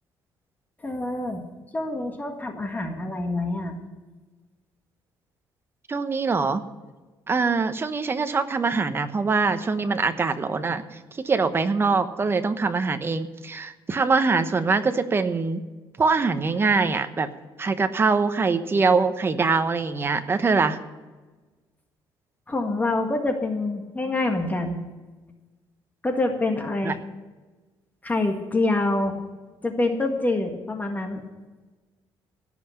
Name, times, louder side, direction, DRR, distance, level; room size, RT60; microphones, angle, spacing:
voice 1, 0.8-1.4 1.7-3.8 22.5-24.8 26.0-27.0 28.0-29.1 29.6-31.2, left 2 dB, 20° left, 4 dB, 1.7 m, -26 dB
voice 2, 5.9-6.6 7.3-15.6 16.0-17.3 17.6-20.8 26.8-26.9, right 4 dB, 25° right, 9 dB, 1.0 m, -23 dB
17.0 x 5.7 x 9.1 m, 1.2 s
cardioid pair, 115°, 9 cm